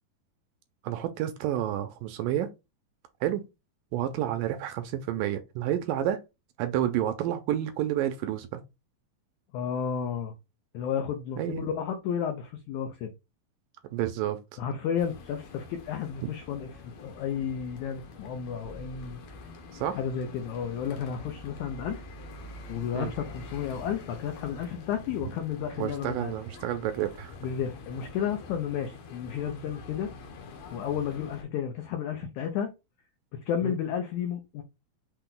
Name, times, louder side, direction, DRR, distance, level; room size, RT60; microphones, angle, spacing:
voice 1, 0.8-2.5 3.2-3.5 3.9-6.2 6.6-8.6 11.4-11.7 13.9-14.4 16.2-16.3 19.7-20.0 22.9-23.1 25.8-27.3 33.6-33.8, right 11 dB, 80° right, 2.0 m, -30 dB
voice 2, 9.5-10.3 10.7-13.1 14.6-19.2 20.0-22.0 22.7-26.4 27.4-30.1 30.7-32.7 33.3-34.6, left 8 dB, 90° left, 1.6 m, -32 dB
sound 1, 15.0-31.4, left 3 dB, 70° left, 1.7 m, -46 dB
6.0 x 2.2 x 3.7 m
omnidirectional pair, 4.2 m